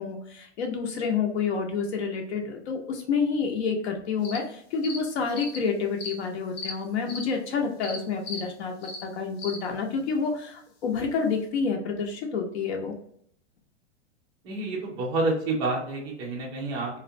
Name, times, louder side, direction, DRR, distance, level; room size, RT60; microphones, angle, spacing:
voice 1, 0.0-12.9, left 5 dB, 65° left, 2 dB, 0.7 m, -29 dB
sound 1, 4.2-4.4 4.8-5.0 5.3-5.6 6.0-6.1 6.6-6.7 7.1-7.2 7.8-8.0 8.2-8.4 8.8-9.0 9.4-9.6, left 3 dB, 85° left, 1.0 m, -36 dB
voice 2, 14.4-17.0, right 2 dB, 15° right, -2 dB, 0.4 m, -28 dB
2.4 x 2.1 x 2.5 m, 0.65 s
supercardioid pair, 150°, 35 cm